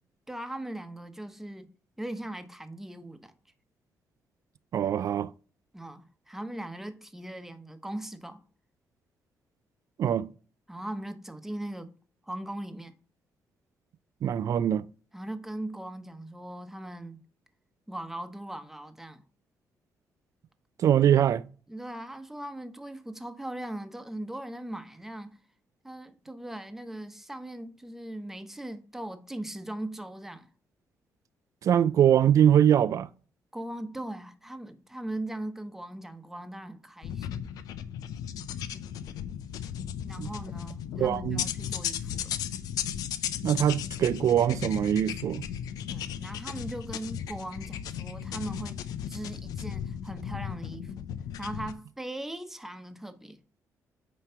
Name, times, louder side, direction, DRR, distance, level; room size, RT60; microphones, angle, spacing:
voice 1, 0.3-1.7 2.0-3.3 5.7-8.4 10.7-11.9 12.2-12.9 15.1-17.2 17.9-19.2 21.7-25.4 25.8-30.5 33.5-37.5 40.0-42.3 45.9-51.1 51.4-53.4, right 1 dB, 5° right, 1.0 m, -39 dB
voice 2, 4.7-5.3 10.0-10.3 14.2-14.9 20.8-21.4 31.6-33.1 40.2-40.3 41.0-41.4 43.4-45.4, right 10 dB, 60° right, 0.4 m, -23 dB
sound 1, 37.0-51.7, left 9 dB, 90° left, 0.7 m, -36 dB
9.1 x 3.2 x 5.7 m
cardioid pair, 110°, 6 cm